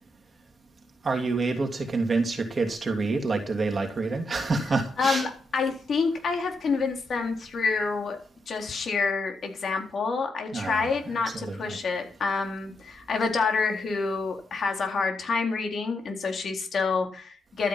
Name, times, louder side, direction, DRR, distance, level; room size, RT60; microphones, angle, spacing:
voice 1, 1.0-5.3 10.5-11.8, right 3 dB, 35° right, 3.0 m, -28 dB
voice 2, 5.0-8.2 8.5-17.7, left 4 dB, 55° left, 3.8 m, -28 dB
13.0 x 9.8 x 6.0 m
cardioid pair, 90°, 0 cm